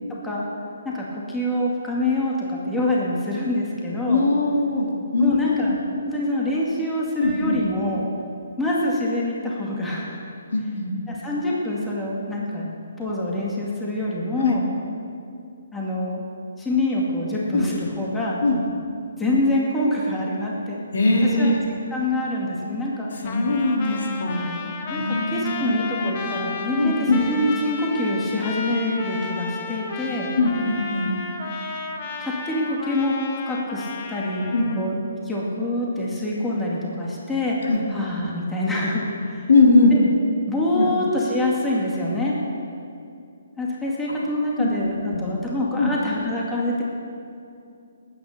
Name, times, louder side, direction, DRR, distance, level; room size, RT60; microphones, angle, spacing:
voice 1, 0.8-4.2 5.2-5.7 6.0-8.1 8.6-10.2 11.1-12.7 13.0-14.7 15.7-16.2 16.6-18.4 19.2-20.8 21.4-21.6 21.9-23.2 24.9-30.3 32.2-34.5 34.7-35.0 35.2-39.5 39.9-40.0 40.5-42.4 43.6-46.8, left 1 dB, 5° left, -5 dB, 2.3 m, -25 dB
voice 2, 4.0-5.8 7.2-7.6 10.5-10.9 14.4-14.6 17.5-17.7 18.4-18.6 20.9-21.6 23.2-24.6 24.9-26.2 26.8-27.2 30.3-31.1 34.5-34.7 37.6-37.8 39.5-39.9 40.7-40.9 44.6-44.7 45.1-45.2 45.8-45.9, left 2 dB, 70° left, 0 dB, 3.3 m, -21 dB
Trumpet, 23.2-34.9, left 4 dB, 35° left, 1.5 m, -33 dB
19.5 x 9.6 x 6.7 m, 2.5 s
hypercardioid pair, 160°, 0 cm